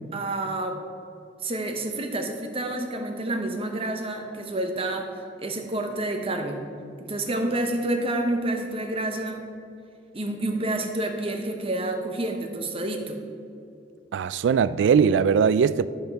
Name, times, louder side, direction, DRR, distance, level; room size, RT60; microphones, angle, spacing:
voice 1, 0.1-0.8 1.4-5.1 5.4-6.6 7.0-9.4 10.1-13.2, right 1 dB, 30° right, 4 dB, 0.9 m, -29 dB
voice 2, 14.1-15.9, right 6 dB, 85° right, 16 dB, 0.3 m, -20 dB
12.0 x 5.6 x 4.7 m, 2.6 s
head